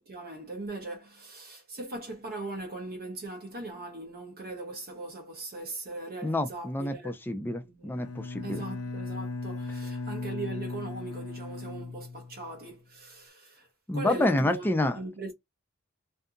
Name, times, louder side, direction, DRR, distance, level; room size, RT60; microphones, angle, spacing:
voice 1, 0.0-7.2 7.6-8.1 8.4-15.3, right 2 dB, 45° right, 0.6 m, -40 dB
voice 2, 6.2-8.6 13.9-15.0, left 1 dB, 10° left, 0.4 m, -28 dB
Bowed string instrument, 7.9-12.7, left 3 dB, 75° left, 0.6 m, -37 dB
2.7 x 2.5 x 2.2 m
head